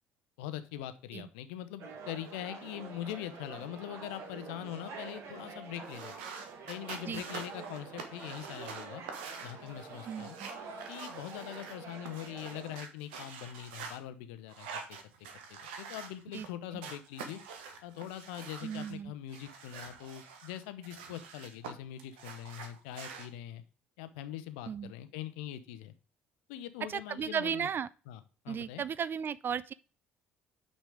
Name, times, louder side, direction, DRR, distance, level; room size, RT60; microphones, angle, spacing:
voice 1, 0.4-6.1 6.7-9.0 9.4-10.4 10.9-14.7 15.5-17.4 17.8-23.6 24.0-25.9 26.5-27.7 28.1-28.2 28.4-28.8, left 12 dB, 65° left, 0.7 m, -42 dB
sound 1, 1.8-12.8, right 4 dB, 55° right, 1.7 m, -47 dB
sound 2, 5.8-14.0 14.5-16.5 16.8-18.9 19.3-21.7 22.0-23.3, right 6 dB, 70° right, 1.2 m, -46 dB
voice 2, 10.1-10.5 16.3-16.5 18.6-19.1 24.7-24.9 26.9-27.9 28.5-29.7, right 7 dB, 35° right, 0.3 m, -35 dB
6.0 x 5.4 x 4.9 m
figure-of-eight pair, 55°, 6 cm